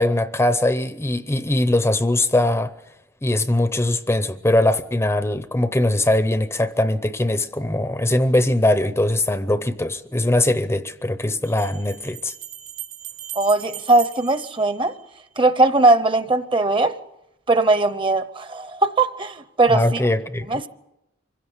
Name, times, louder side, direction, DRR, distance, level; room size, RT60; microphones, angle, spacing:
voice 1, 0.0-2.7 3.2-12.3 19.7-20.6, left 1 dB, 15° left, 0.7 m, -21 dB
sound 1, 11.4-15.4, right 11 dB, 90° right, 2.8 m, -38 dB
voice 2, 13.4-14.9 15.4-16.9 17.5-20.0 20.5-20.7, right 2 dB, 25° right, 0.9 m, -19 dB
25.0 x 16.5 x 8.0 m
head